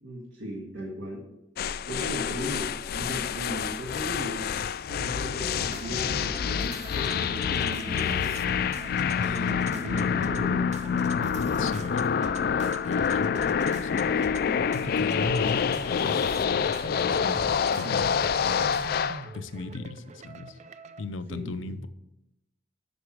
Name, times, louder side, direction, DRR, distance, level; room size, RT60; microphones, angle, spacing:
voice 1, 0.0-1.3 1.9-4.5 4.9-8.4 9.2-10.8 21.3-21.8, equal, 85° right, -3 dB, 1.7 m, -37 dB
sound 1, 1.6-19.2, left 7 dB, 50° left, 0.3 m, -27 dB
sound 2, 5.7-21.1, right 3 dB, 35° right, 0.4 m, -41 dB
voice 2, 9.2-9.5 11.6-12.1 12.9-14.3 14.6-17.4 17.8-18.8 19.3-20.6 21.0-21.9, left 3 dB, 85° left, 12 dB, 0.6 m, -37 dB
7.9 x 6.1 x 6.2 m, 0.89 s
head